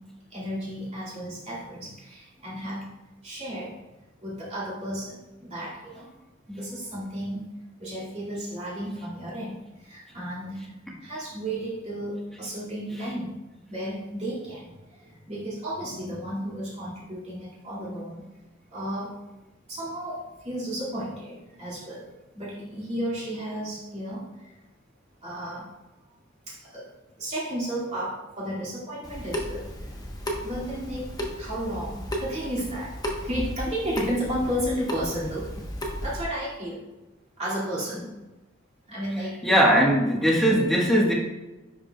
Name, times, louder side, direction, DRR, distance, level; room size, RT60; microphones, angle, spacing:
voice 1, 0.3-2.9 3.2-3.8 4.2-6.1 6.5-7.4 7.8-9.5 9.8-10.6 11.0-13.3 13.7-14.7 15.3-18.2 18.7-19.1 19.7-22.0 22.4-24.3 25.2-25.7 26.5-26.8 27.2-29.7 30.4-31.1 31.4-32.9 33.2-35.5 36.0-36.8 37.4-38.1 38.9-39.4 40.4-40.6, equal, 35° right, -8 dB, 2.2 m, -33 dB
Water tap faucet / Sink (filling or washing) / Drip, 29.0-36.2, equal, 20° left, 0.9 m, -34 dB
voice 2, 39.4-41.1, equal, ahead, -3 dB, 1.3 m, -20 dB
10.0 x 4.9 x 2.3 m, 1.1 s
head